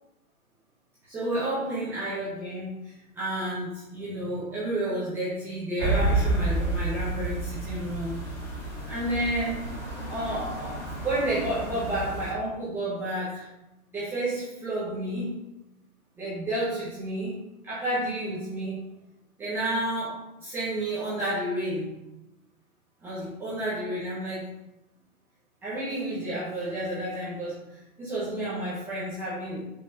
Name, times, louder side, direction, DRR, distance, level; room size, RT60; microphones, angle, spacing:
voice 1, 1.1-8.2 8.9-9.6 10.1-10.8 11.0-13.5 13.9-15.3 16.2-17.3 17.6-18.8 19.4-21.9 23.0-24.4 25.6-29.6, right 1 dB, 5° right, -12 dB, 1.1 m, -31 dB
sound 1, 5.8-12.3, right 2 dB, 20° left, 2.4 m, -30 dB
5.7 x 4.1 x 5.3 m, 0.96 s
hypercardioid pair, 165°, 43 cm